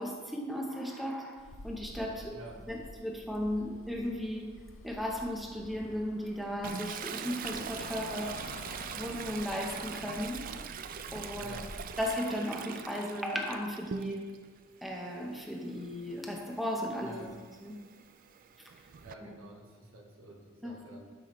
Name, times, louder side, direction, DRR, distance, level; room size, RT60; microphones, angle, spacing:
voice 1, 0.0-2.4 2.7-4.5 4.8-8.5 8.9-10.5 11.1-11.5 12.0-14.3 14.8-17.3 17.6-17.8 18.6-18.7 19.2-19.3 20.6-20.8, equal, ahead, -1 dB, 0.9 m, -36 dB
Bus, 1.4-12.0, left 2 dB, 70° left, 0.7 m, -49 dB
voice 2, 2.3-2.7 11.4-11.7 17.0-17.3 19.0-21.1, right 1 dB, 75° right, 0 dB, 1.5 m, -49 dB
Toilet flush, 6.6-14.4 14.8-19.1, right 7 dB, 40° right, 0.3 m, -43 dB
12.0 x 5.7 x 3.1 m, 1.5 s
head